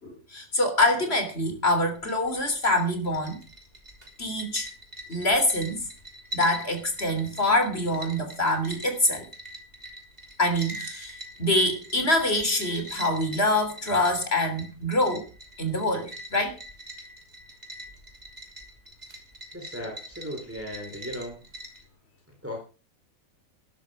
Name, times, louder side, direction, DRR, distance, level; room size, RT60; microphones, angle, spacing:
voice 1, 0.0-3.4 4.2-4.7 5.1-5.9 6.3-9.3 10.4-15.3 15.6-16.6, left 1 dB, 45° left, 7 dB, 3.6 m, -25 dB
sound 1, 1.9-21.8, right 1 dB, 30° right, 3.2 m, -43 dB
voice 2, 19.5-21.4 22.3-22.6, equal, 10° right, 1 dB, 4.0 m, -37 dB
13.0 x 11.5 x 5.1 m, 0.35 s
omnidirectional pair, 1.5 m